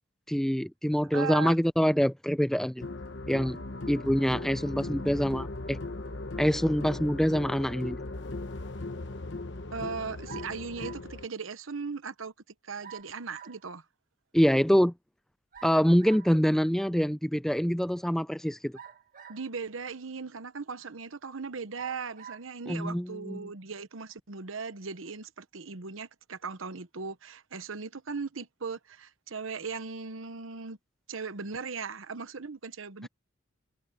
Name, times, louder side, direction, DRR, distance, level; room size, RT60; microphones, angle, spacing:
voice 1, 0.3-2.8 3.3-3.6 3.9-5.8 6.4-8.0 14.3-14.9 15.6-18.7 22.7-23.5, equal, ahead, 0.4 m, -25 dB
voice 2, 1.1-1.6 9.7-12.3 12.6-13.8 19.3-30.8 31.1-33.1, right 5 dB, 90° right, 1.0 m, -38 dB
sound 1, 2.8-11.3, left 2 dB, 60° left, 1.1 m, -38 dB
sound 2, 10.3-11.1 12.8-13.6 15.5-16.3 18.7-19.6 20.3-20.4 21.7-22.5, right 9 dB, 45° right, 2.1 m, -47 dB
head